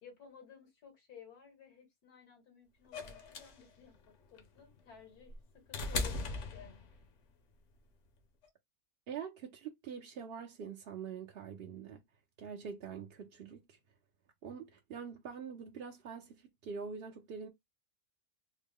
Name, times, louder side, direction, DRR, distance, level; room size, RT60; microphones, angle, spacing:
voice 1, 0.0-7.0, left 7 dB, 80° left, 2.0 m, -56 dB
sound 1, 2.9-7.2 8.4-8.5, left 3 dB, 55° left, 1.0 m, -39 dB
voice 2, 9.1-12.0 12.4-13.8 14.4-17.5, right 6 dB, 60° right, 0.6 m, -45 dB
3.7 x 2.1 x 3.5 m
omnidirectional pair, 1.6 m